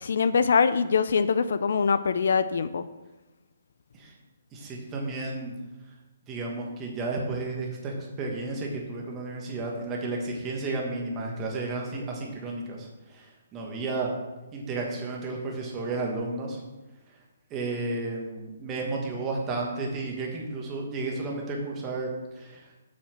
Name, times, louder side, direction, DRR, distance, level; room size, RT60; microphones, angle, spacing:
voice 1, 0.0-2.8, left 5 dB, 60° left, 13 dB, 0.4 m, -23 dB
voice 2, 4.5-5.5 6.3-14.1 14.5-16.6 17.5-22.1 22.3-22.7, right 3 dB, 15° right, -1 dB, 1.3 m, -32 dB
7.5 x 5.6 x 6.6 m, 1.1 s
hypercardioid pair, 175°, 0 cm